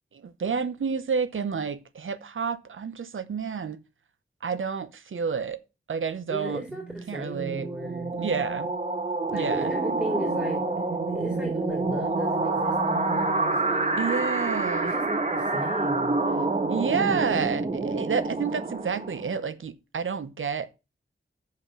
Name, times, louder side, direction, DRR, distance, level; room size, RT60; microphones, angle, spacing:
voice 1, 0.2-3.8 4.4-5.6 5.9-6.6 7.1-7.7 8.2-8.7 9.3-9.7 13.7-14.9 16.7-20.7, right 6 dB, 80° right, 0.8 m, -29 dB
voice 2, 6.3-8.1 9.3-14.0 14.8-16.2, equal, 5° right, 2.6 m, -35 dB
sound 1, 6.8-19.4, right 3 dB, 35° right, 1.2 m, -28 dB
6.9 x 5.6 x 6.0 m
wide cardioid pair, 90°, 20 cm